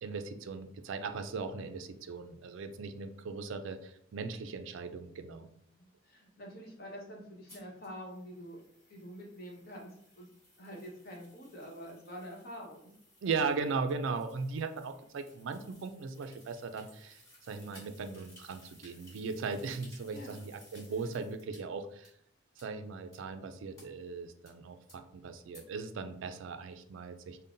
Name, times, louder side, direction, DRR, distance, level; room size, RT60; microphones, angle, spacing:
voice 1, 0.0-5.5 13.2-22.1 22.6-27.4, right 4 dB, 70° right, 8 dB, 0.3 m, -38 dB
voice 2, 5.7-8.6 8.9-10.3 10.6-12.9 20.1-20.3 21.0-21.2, equal, 50° left, -2 dB, 1.0 m, -47 dB
sound 1, 7.5-21.6 22.0-22.1 22.6-22.7 23.1-23.2 23.8-23.9 24.5-24.6 24.9-25.0 25.5-25.6, left 1 dB, 15° left, 1.3 m, -60 dB
5.3 x 2.1 x 2.6 m, 0.70 s
head